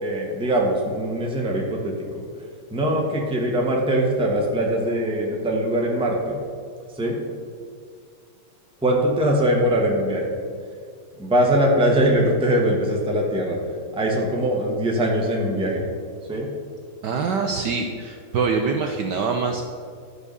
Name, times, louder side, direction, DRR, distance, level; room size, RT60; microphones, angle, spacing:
voice 1, 0.0-2.2 2.7-6.4 6.9-7.2 8.8-10.3 11.2-13.6 13.9-15.8 16.3-16.5, right 1 dB, 5° right, -1 dB, 1.0 m, -22 dB
voice 2, 17.0-19.6, right 5 dB, 70° right, 4 dB, 1.1 m, -24 dB
12.0 x 4.9 x 6.8 m, 2.2 s
omnidirectional pair, 2.4 m